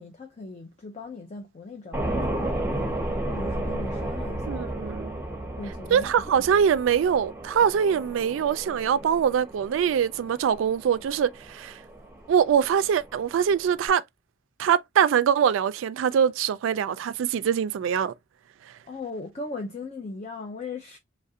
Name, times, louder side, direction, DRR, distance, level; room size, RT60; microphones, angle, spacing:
voice 1, 0.0-3.0 3.3-4.7 5.6-6.1 6.4-6.5 18.8-21.0, left 3 dB, 35° left, 0.5 m, -38 dB
sound 1, 1.9-13.9, right 1 dB, 10° right, 0.9 m, -33 dB
voice 2, 4.5-5.2 5.9-11.8 12.3-14.0 14.6-18.1, right 8 dB, 80° right, 0.3 m, -23 dB
3.1 x 2.4 x 2.6 m
head